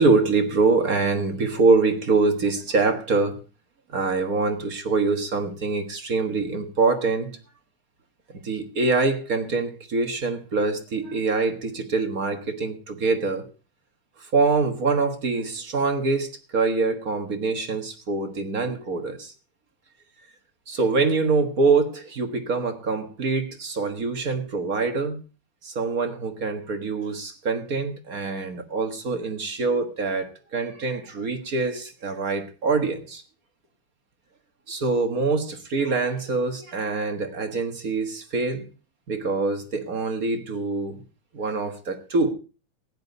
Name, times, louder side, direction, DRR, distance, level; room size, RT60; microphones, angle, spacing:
voice 1, 0.0-3.4 3.9-7.3 8.4-13.4 14.2-19.3 20.7-25.2 25.6-33.2 34.7-38.6 39.1-41.0 41.3-42.3, right 3 dB, 45° right, 1.7 m, -24 dB
16.5 x 10.5 x 4.0 m
omnidirectional pair, 2.4 m